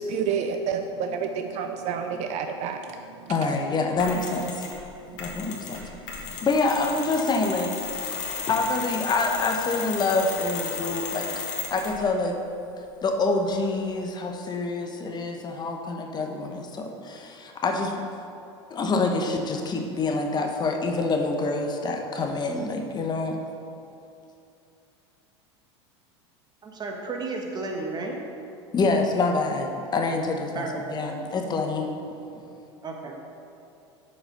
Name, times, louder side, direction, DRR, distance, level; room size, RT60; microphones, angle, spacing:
voice 1, 0.0-3.3 5.1-6.5, right 6 dB, 50° right, 6 dB, 0.5 m, -31 dB
voice 2, 3.3-4.7 5.2-5.8 6.4-7.7 8.5-11.3 11.7-12.4 13.0-17.9 18.7-23.4 28.7-32.0, left 3 dB, 30° left, 3 dB, 1.0 m, -26 dB
Mechanisms, 4.0-4.8 5.2-12.0, left 5 dB, 55° left, 1.9 m, -34 dB
voice 3, 26.6-28.2 30.5-30.8 32.8-33.1, right 3 dB, 30° right, 1 dB, 1.5 m, -32 dB
6.9 x 5.4 x 6.7 m, 2.7 s
hypercardioid pair, 90°, 15 cm